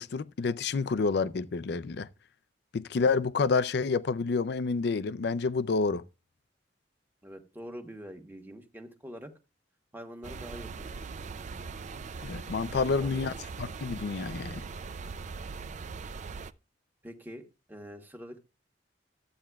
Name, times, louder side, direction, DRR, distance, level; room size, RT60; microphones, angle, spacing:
voice 1, 0.0-2.1 2.7-6.0 12.2-13.3 13.6-14.6, left 4 dB, 65° left, 0.4 m, -29 dB
voice 2, 7.2-9.3 9.9-11.0 12.7-13.3 17.0-17.4 17.7-18.4, equal, 10° right, 1.3 m, -45 dB
sound 1, 10.2-16.5, right 4 dB, 40° right, 0.4 m, -40 dB
14.0 x 8.6 x 2.3 m
head